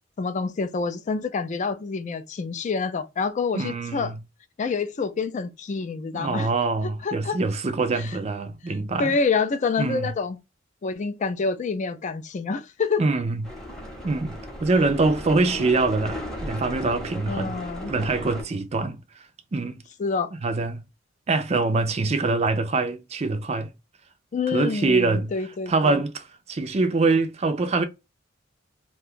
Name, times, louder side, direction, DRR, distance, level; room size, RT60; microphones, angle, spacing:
voice 1, 0.2-4.1 4.6-6.5 6.8-7.4 7.9-8.2 8.7-10.4 10.8-13.0 15.5-15.7 17.3-17.9 20.0-20.3 24.3-26.0, left 4 dB, 35° left, 0.4 m, -27 dB
voice 2, 3.5-4.2 6.1-9.2 9.8-10.1 13.0-13.4 14.0-17.6 17.9-19.0 19.5-19.8 20.4-20.8 21.3-23.7 24.5-25.3 25.7-27.9, right 3 dB, 30° right, 0.4 m, -24 dB
sound 1, 13.4-18.4, equal, 5° left, 0.8 m, -36 dB
2.5 x 2.2 x 3.5 m
head